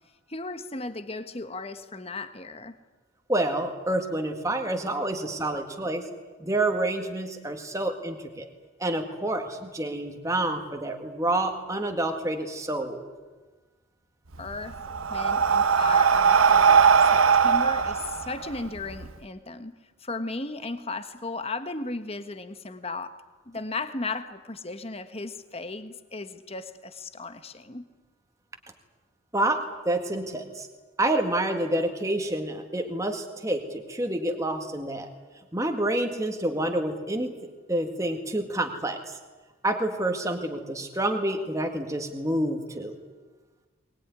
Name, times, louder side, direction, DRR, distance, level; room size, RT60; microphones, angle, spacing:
voice 1, 0.3-2.7 5.3-5.4 14.4-14.8 15.1-16.9 17.1-19.7 20.0-23.1 23.5-27.9, left 3 dB, 30° left, 1.4 m, -36 dB
voice 2, 3.3-6.0 6.4-8.5 8.8-13.1 29.3-30.7 31.0-35.1 35.5-37.4 37.7-39.1 39.6-42.9, right 1 dB, 15° right, 1.9 m, -28 dB
Breathing, 14.3-19.1, right 6 dB, 85° right, 0.9 m, -20 dB
22.5 x 20.0 x 9.7 m
head